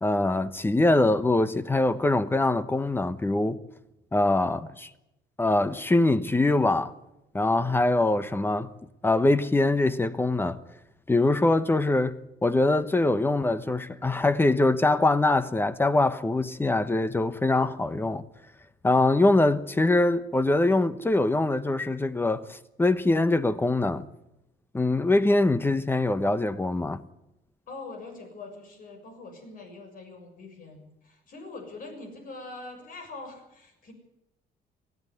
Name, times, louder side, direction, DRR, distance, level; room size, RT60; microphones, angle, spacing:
voice 1, 0.0-3.6 4.1-4.9 5.4-6.9 7.3-8.7 9.0-10.6 11.1-12.1 12.4-18.2 18.8-24.1 24.7-27.0, left 2 dB, 15° left, 1.0 m, -23 dB
voice 2, 27.7-33.9, left 3 dB, 55° left, 6.7 m, -43 dB
19.0 x 14.5 x 9.5 m
cardioid pair, 110°, 17 cm